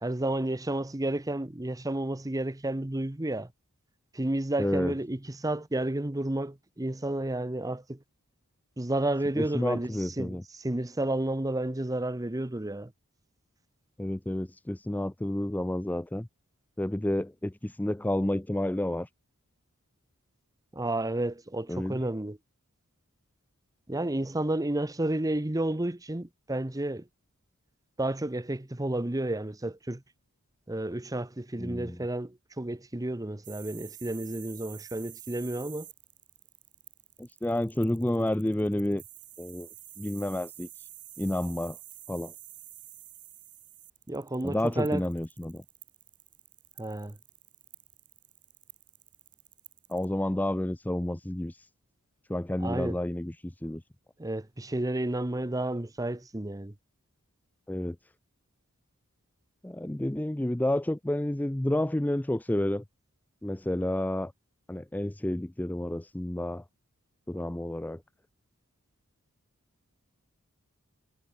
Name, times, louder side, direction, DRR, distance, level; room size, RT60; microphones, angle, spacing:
voice 1, 0.0-3.5 4.1-8.0 8.8-12.9 20.7-22.4 23.9-27.0 28.0-30.0 30.7-35.9 44.1-45.0 46.8-47.2 52.6-53.0 54.2-56.7, right 1 dB, 15° right, 0.8 m, -31 dB
voice 2, 4.6-4.9 9.4-10.4 14.0-16.3 16.8-19.1 21.7-21.9 31.6-32.0 37.2-39.0 39.4-39.7 40.0-40.7 41.2-41.8 42.1-42.3 44.4-45.6 49.9-51.7 52.3-53.8 57.7-58.0 59.6-62.8 63.4-64.3 64.7-66.6 67.3-68.0, left 1 dB, 5° left, 0.4 m, -30 dB
sound 1, 33.4-50.0, right 12 dB, 35° right, 6.5 m, -49 dB
head